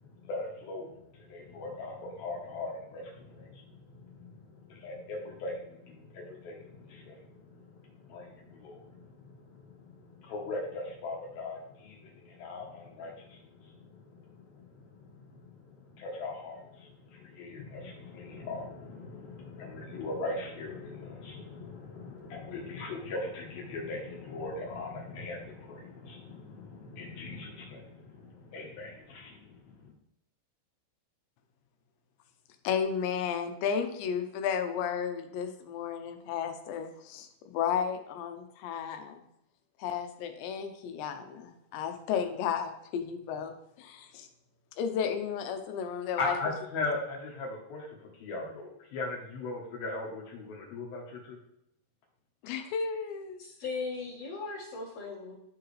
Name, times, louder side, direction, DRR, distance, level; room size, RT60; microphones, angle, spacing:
voice 1, 0.0-29.9 46.2-51.4, left 3 dB, 65° left, -3 dB, 2.8 m, -40 dB
voice 2, 32.6-39.2 39.8-44.3 44.8-46.4 52.4-53.4, left 7 dB, 85° left, 7 dB, 3.0 m, -33 dB
voice 3, 53.4-55.3, left 4 dB, 45° left, -10 dB, 2.6 m, -38 dB
13.0 x 4.7 x 3.3 m, 0.79 s
omnidirectional pair, 5.0 m